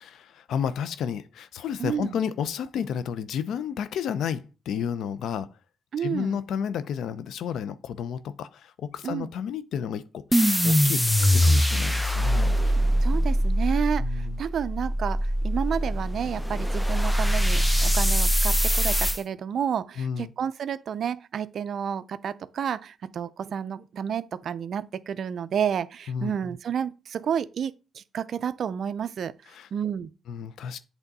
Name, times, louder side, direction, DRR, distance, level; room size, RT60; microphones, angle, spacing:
voice 1, 0.0-5.5 6.0-12.7 14.0-14.4 20.0-20.3 26.1-26.4 29.5-29.7 30.3-30.8, left 8 dB, 75° left, 0.5 m, -32 dB
voice 2, 1.8-2.2 5.9-6.4 9.0-9.3 13.0-29.3 29.7-30.1, right 8 dB, 60° right, 0.4 m, -30 dB
sound 1, 10.3-19.2, equal, 5° left, 0.6 m, -23 dB
8.1 x 3.5 x 4.1 m
cardioid pair, 85°, 0 cm